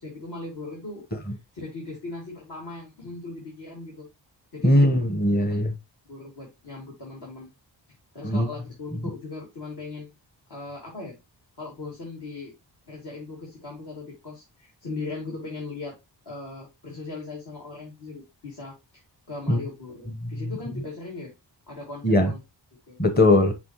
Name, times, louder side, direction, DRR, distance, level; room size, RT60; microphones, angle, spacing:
voice 1, 0.0-4.1 4.5-5.0 5.5-5.6 6.1-7.5 7.9-10.1 10.5-11.1 11.6-12.5 12.9-16.0 16.2-19.0 19.3-21.3 21.7-22.4 22.9-23.0, left 3 dB, 60° left, 2.6 m, -39 dB
voice 2, 4.6-5.7 8.2-8.5 19.5-19.6 20.2-20.3 22.0-22.3 23.0-23.5, left 1 dB, 20° left, 1.0 m, -19 dB
6.0 x 5.2 x 3.0 m
cardioid pair, 65°, 43 cm